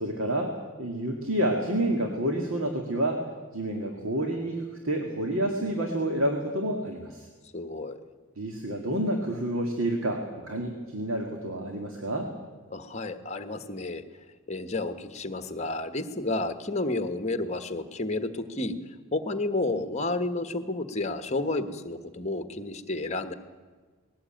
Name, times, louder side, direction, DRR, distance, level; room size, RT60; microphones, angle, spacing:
voice 1, 0.0-3.2 3.5-7.3 8.4-12.3, right 1 dB, 70° right, 3 dB, 2.2 m, -29 dB
voice 2, 7.5-8.0 12.7-14.0 14.5-18.8 19.1-23.3, left 2 dB, 30° left, 9 dB, 1.3 m, -31 dB
20.0 x 17.5 x 9.0 m, 1.4 s
head